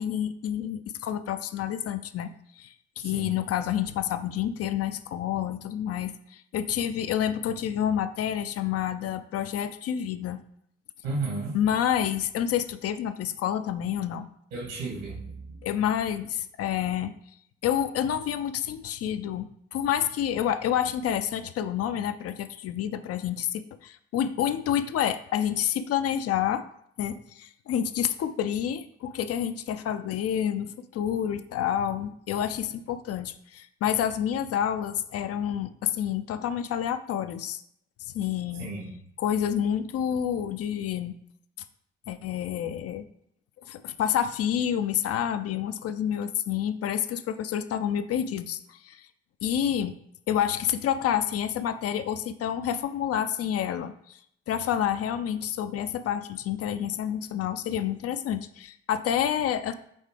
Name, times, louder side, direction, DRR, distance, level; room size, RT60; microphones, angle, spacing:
voice 1, 0.0-2.3 2.6-10.4 11.5-14.3 15.6-17.1 17.6-26.6 27.0-37.6 38.1-38.7 39.2-41.1 42.1-43.0 43.7-49.1 49.4-49.9 50.3-54.2 54.5-59.7, left 9 dB, 50° left, 11 dB, 0.5 m, -28 dB
voice 2, 11.0-11.6 14.5-15.6 38.6-38.9, right 3 dB, 70° right, -3 dB, 2.4 m, -33 dB
8.5 x 3.6 x 3.3 m, 0.70 s
figure-of-eight pair, 40°, 33 cm